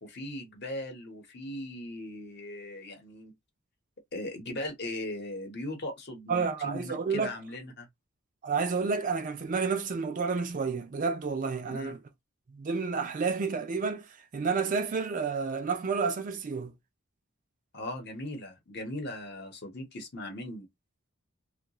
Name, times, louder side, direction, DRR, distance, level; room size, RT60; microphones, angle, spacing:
voice 1, 0.0-3.3 4.1-7.9 11.7-12.0 17.7-20.7, left 1 dB, 55° left, 1.0 m, -39 dB
voice 2, 6.3-7.3 8.4-12.0 12.5-16.7, right 5 dB, 40° right, 0.4 m, -30 dB
2.3 x 2.3 x 2.9 m
head